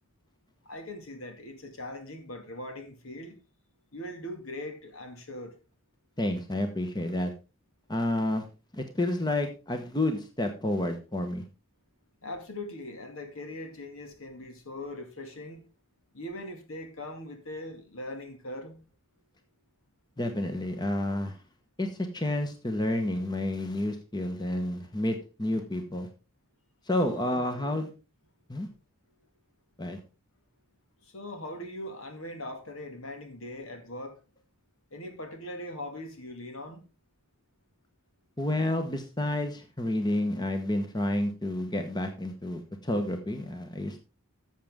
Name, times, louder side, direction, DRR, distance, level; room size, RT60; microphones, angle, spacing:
voice 1, 0.7-3.4 3.9-5.6 12.2-15.6 16.1-18.8 27.1-27.5 31.0-34.2 34.9-36.8, left 1 dB, 70° left, 2.2 m, -40 dB
voice 2, 6.2-7.3 7.9-8.4 8.7-11.4 20.2-21.4 21.8-26.1 26.9-27.9 28.5-28.7 29.8-30.0 38.4-44.0, left 1 dB, 20° left, 1.1 m, -30 dB
13.0 x 7.3 x 3.6 m
head